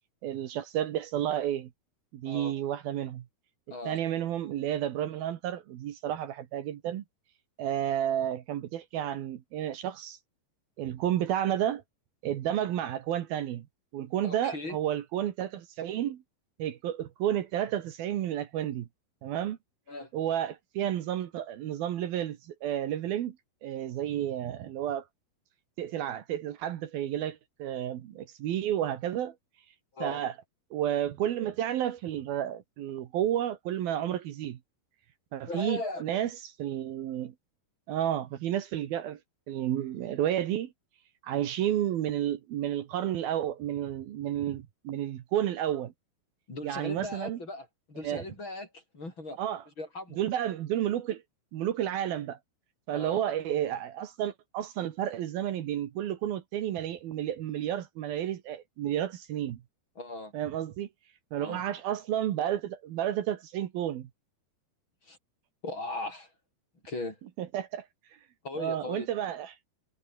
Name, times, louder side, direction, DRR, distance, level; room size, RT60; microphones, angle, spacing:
voice 1, 0.2-1.7 2.1-3.2 3.9-7.0 7.6-10.2 10.8-11.8 12.2-13.7 13.9-16.2 16.6-18.9 19.2-19.6 20.1-23.4 23.6-25.0 25.8-29.3 30.0-30.3 30.7-34.6 35.3-37.3 37.9-39.2 39.5-40.7 41.2-45.9 46.6-47.4 48.0-48.2 49.4-49.6 50.2-51.2 51.5-52.4 52.9-59.6 60.3-60.9 61.3-64.1 67.4-67.9 68.6-69.6, right 11 dB, 70° right, 3.2 m, -31 dB
voice 2, 14.2-14.8 19.9-20.1 29.9-30.2 35.5-36.0 46.5-49.4 49.8-50.2 52.9-53.2 60.0-60.3 61.4-61.6 65.0-65.2 65.6-66.3 66.8-67.2 68.4-69.1, left 2 dB, 30° left, 7.4 m, -38 dB
omnidirectional pair, 4.6 m